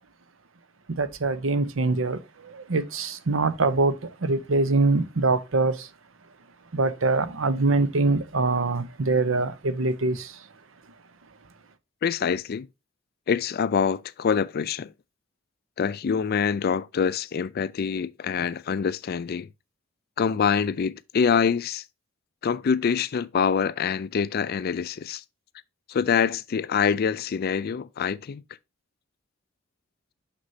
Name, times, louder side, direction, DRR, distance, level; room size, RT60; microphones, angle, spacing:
voice 1, 0.9-5.9 6.7-10.5, right 3 dB, 70° right, 0.7 m, -24 dB
voice 2, 12.0-12.7 13.3-14.9 15.8-19.5 20.2-21.8 22.4-25.2 25.9-28.4, left 6 dB, 50° left, 0.4 m, -25 dB
6.3 x 6.0 x 2.7 m
head